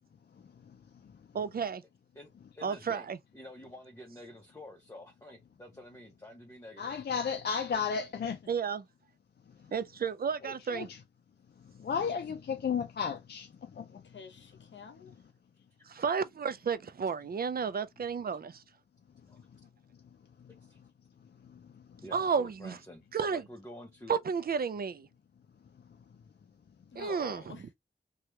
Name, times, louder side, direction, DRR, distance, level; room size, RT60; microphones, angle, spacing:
voice 1, 1.3-1.8 2.6-3.2 8.5-8.8 9.7-10.9 15.8-18.6 22.1-22.8 23.1-23.4 24.1-25.1 27.0-27.6, right 6 dB, 55° right, 0.4 m, -32 dB
voice 2, 2.2-3.1 3.3-6.9 19.3-19.5 20.6-20.8 22.0-24.2 27.1-27.4, left 1 dB, 15° left, 0.8 m, -49 dB
voice 3, 6.8-8.4 10.4-11.0 11.8-13.5 13.8-13.9, left 6 dB, 60° left, 0.4 m, -33 dB
voice 4, 13.9-15.1 26.9-27.7, left 5 dB, 80° left, 0.8 m, -50 dB
2.8 x 2.3 x 3.1 m
cardioid pair, 45°, 19 cm